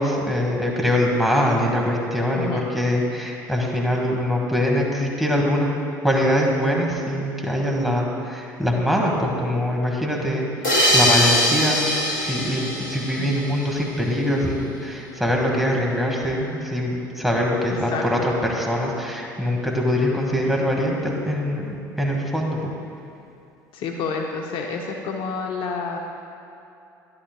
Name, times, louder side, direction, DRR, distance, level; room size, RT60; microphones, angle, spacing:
voice 1, 0.0-5.7 6.0-10.5 10.9-11.8 12.2-22.7, equal, ahead, -2 dB, 1.9 m, -23 dB
voice 2, 2.3-2.6 13.2-13.3 17.9-18.0 23.7-26.0, left 4 dB, 55° left, 2 dB, 0.8 m, -29 dB
sound 1, 10.6-14.0, equal, 85° left, 1.6 m, -22 dB
12.0 x 11.0 x 2.3 m, 2.7 s
hypercardioid pair, 65°, 10 cm